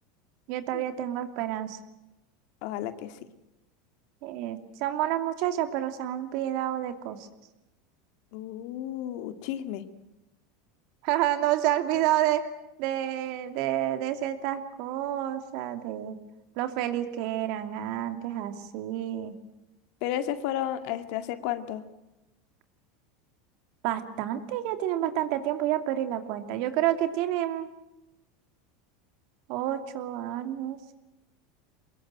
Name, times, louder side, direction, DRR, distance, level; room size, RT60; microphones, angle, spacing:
voice 1, 0.5-1.8 4.2-7.3 11.0-12.5 12.8-16.2 16.6-19.3 23.8-27.7 29.5-30.9, right 12 dB, 60° right, 8 dB, 2.7 m, -29 dB
voice 2, 2.6-3.2 8.3-9.8 11.9-12.0 20.0-21.8, left 11 dB, 60° left, 10 dB, 2.0 m, -32 dB
23.5 x 21.0 x 9.0 m, 0.96 s
supercardioid pair, 125°, 0 cm